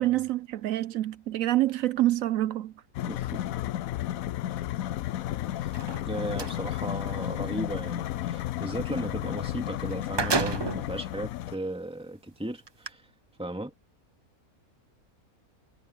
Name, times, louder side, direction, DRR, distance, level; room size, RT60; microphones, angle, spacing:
voice 1, 0.0-2.7, right 15 dB, 70° right, 0.9 m, -26 dB
sound 1, 2.9-11.6, left 13 dB, 70° left, 1.0 m, -33 dB
voice 2, 3.0-3.4 5.6-5.7 6.0-13.1 13.4-13.7, right 1 dB, 5° right, 2.4 m, -36 dB
sound 2, 5.6-6.6 9.4-9.5 9.8-10.9 11.6-11.7 12.7-12.9, right 4 dB, 40° right, 0.3 m, -30 dB
omnidirectional pair, 1.6 m